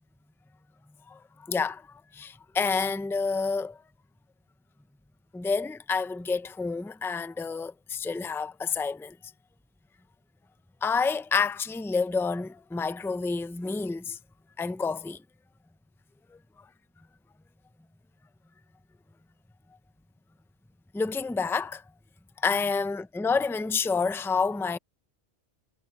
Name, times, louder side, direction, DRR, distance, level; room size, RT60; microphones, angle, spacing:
voice 1, 1.5-3.8 5.3-9.2 10.8-14.2 14.6-15.2 20.9-21.8 22.4-24.8, left 5 dB, 5° left, 0.4 m, -29 dB
omnidirectional pair, 1.1 m